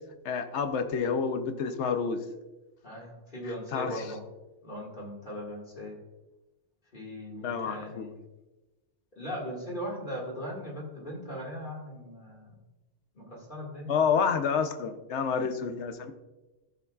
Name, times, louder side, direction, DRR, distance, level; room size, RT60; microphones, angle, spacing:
voice 1, 0.2-2.2 3.7-4.1 7.4-8.1 13.9-16.1, left 6 dB, 90° left, 8 dB, 1.1 m, -29 dB
voice 2, 2.8-4.2 4.6-6.0 6.9-8.2 9.2-12.6 13.1-14.0, equal, 45° left, -4 dB, 2.3 m, -39 dB
13.5 x 7.0 x 2.4 m, 1.1 s
omnidirectional pair, 1.1 m